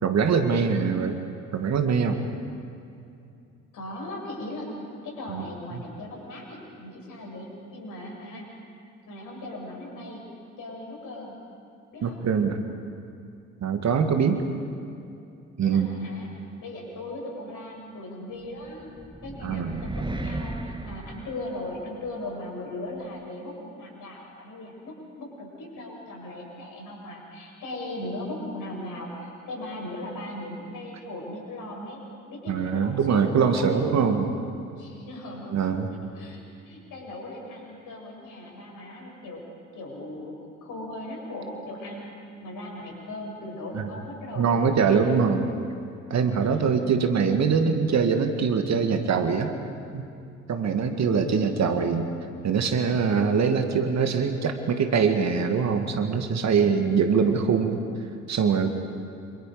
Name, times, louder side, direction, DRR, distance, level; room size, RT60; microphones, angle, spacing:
voice 1, 0.0-1.2 1.5-2.2 5.3-5.4 5.7-5.8 12.0-12.7 13.6-14.4 15.6-15.9 19.4-19.8 32.5-34.3 35.5-35.9 43.7-43.8 44.4-45.5 46.1-49.5 49.9-50.0 50.5-52.1 52.4-57.8 58.3-58.7, right 6 dB, 45° right, 6 dB, 2.3 m, -23 dB
voice 2, 3.7-4.7 5.0-8.5 9.1-10.3 10.6-11.4 11.9-12.3 14.5-14.8 15.6-16.3 16.6-18.9 19.2-32.0 32.3-33.8 34.7-35.7 36.1-39.4 39.8-40.3 40.6-42.1 42.4-45.1 46.4-46.9 51.4-51.7, left 1 dB, 55° left, -1 dB, 7.9 m, -38 dB
sound 1, 18.6-22.0, right 2 dB, 10° right, 1.7 m, -35 dB
28.5 x 27.0 x 5.1 m, 2.6 s
figure-of-eight pair, 50°, 38 cm